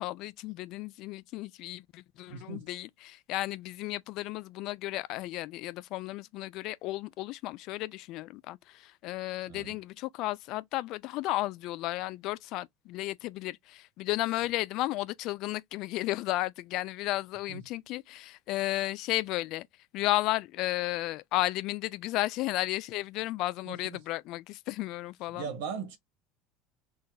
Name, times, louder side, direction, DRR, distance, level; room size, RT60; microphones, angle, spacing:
voice 1, 0.0-19.7 19.9-25.5, left 17 dB, 60° left, 0.3 m, -33 dB
voice 2, 2.3-2.6 9.5-9.7 17.5-17.6 23.6-23.8 25.3-26.0, right 6 dB, 75° right, 1.4 m, -38 dB
3.8 x 2.1 x 3.9 m
hypercardioid pair, 70°, 0 cm